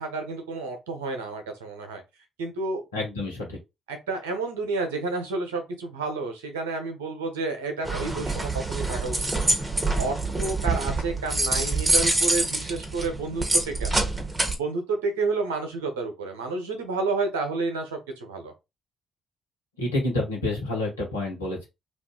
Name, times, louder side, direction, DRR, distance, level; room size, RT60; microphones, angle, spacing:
voice 1, 0.0-2.0 2.4-2.8 3.9-9.2 9.4-9.5 10.0-14.0 14.5-18.5, right 3 dB, 80° right, 0.8 m, -30 dB
voice 2, 2.9-3.6 19.8-21.7, left 2 dB, 90° left, 1.0 m, -28 dB
sound 1, 7.8-14.5, right 2 dB, 25° right, 1.0 m, -26 dB
2.6 x 2.5 x 3.8 m
hypercardioid pair, 45°, 0 cm